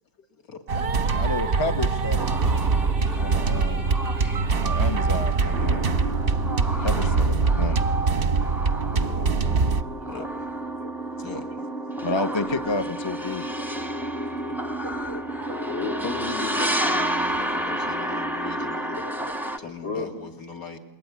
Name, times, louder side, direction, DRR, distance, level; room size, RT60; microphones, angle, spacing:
sound 1, 0.7-9.8, right 4 dB, 40° right, 1.0 m, -23 dB
voice 1, 1.1-2.7 3.2-3.9 4.6-5.9 6.8-7.8 12.0-13.4, left 3 dB, 20° left, 9 dB, 0.7 m, -30 dB
sound 2, 2.2-19.6, right 1 dB, ahead, 1.0 m, -31 dB
voice 2, 6.9-7.3 8.9-9.3 10.1-10.3 11.2-11.5 14.2-14.6 16.0-19.0 19.6-20.8, left 5 dB, 45° left, 5 dB, 2.8 m, -38 dB
voice 3, 10.8-11.1 15.1-16.0 19.0-20.1, left 3 dB, 75° left, 7 dB, 4.4 m, -35 dB
27.5 x 21.5 x 9.5 m, 1.0 s
omnidirectional pair, 2.1 m